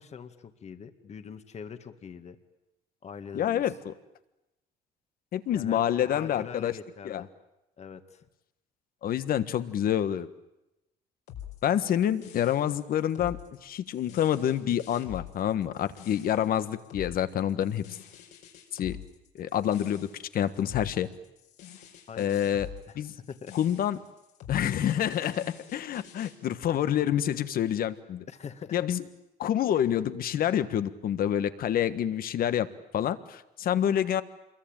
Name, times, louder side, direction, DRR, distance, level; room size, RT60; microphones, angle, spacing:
voice 1, 0.0-2.4 3.0-3.6 5.5-7.3 7.8-8.3 22.1-22.4 22.9-23.0 23.3-23.5 28.3-28.8, left 7 dB, 40° left, 8 dB, 1.9 m, -43 dB
voice 2, 3.3-3.9 5.3-6.7 7.0-7.2 9.0-10.3 11.6-13.4 13.6-17.8 18.7-19.0 19.4-20.1 20.3-21.1 22.2-22.7 22.9-23.1 23.5-24.0 24.5-28.2 28.7-29.0 29.4-32.7 32.9-34.2, left 10 dB, 60° left, 12 dB, 1.5 m, -27 dB
sound 1, 11.3-26.4, left 10 dB, 80° left, 5.0 m, -46 dB
27.0 x 22.5 x 8.9 m, 0.92 s
cardioid pair, 110°, 17 cm